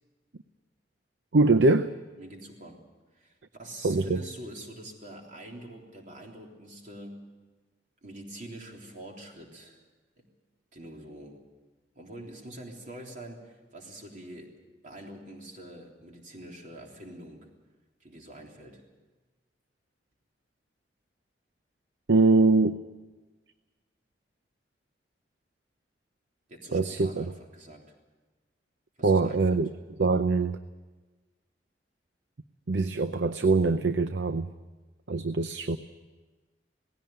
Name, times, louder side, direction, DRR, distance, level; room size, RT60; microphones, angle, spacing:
voice 1, 1.3-1.9 3.8-4.2 22.1-22.8 26.7-27.3 29.0-29.7 30.0-30.6 32.7-34.5 35.1-35.8, right 3 dB, 75° right, 10 dB, 0.7 m, -23 dB
voice 2, 2.2-2.8 3.1-7.2 8.0-9.8 10.2-10.3 10.7-11.4 11.9-14.5 14.8-17.5 18.0-18.8 26.5-27.9 29.0-29.6, right 1 dB, 45° right, 1 dB, 3.4 m, -45 dB
18.5 x 16.5 x 9.3 m, 1.2 s
head